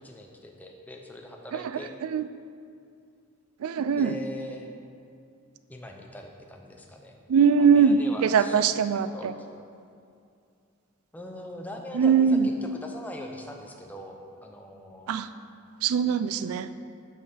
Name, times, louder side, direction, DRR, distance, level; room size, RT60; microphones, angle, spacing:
voice 1, 0.0-1.9 4.0-4.7 5.7-7.2 7.6-8.7 9.1-9.3 11.1-14.2 14.4-15.1, left 1 dB, 10° left, 1 dB, 0.6 m, -41 dB
voice 2, 3.6-4.2 7.3-9.3 11.9-12.5 15.1-15.3 15.8-16.7, right 6 dB, 80° right, 13 dB, 0.3 m, -22 dB
6.5 x 5.5 x 5.6 m, 2.4 s
head